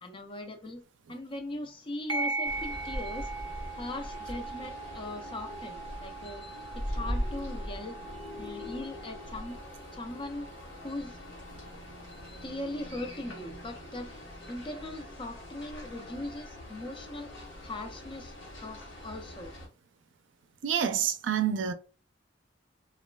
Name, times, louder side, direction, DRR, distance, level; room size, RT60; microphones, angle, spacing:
voice 1, 0.0-0.8 1.1-3.3 3.8-8.0 8.4-9.6 9.9-10.5 10.8-11.2 12.4-14.1 14.5-17.3 17.6-19.5, left 1 dB, 30° left, 0.4 m, -40 dB
sound 1, 2.1-11.1, right 3 dB, 25° right, 0.5 m, -40 dB
sound 2, 2.4-19.7, equal, 90° left, 1.1 m, -41 dB
voice 2, 20.6-21.7, right 8 dB, 90° right, 0.4 m, -27 dB
3.1 x 2.3 x 2.2 m
head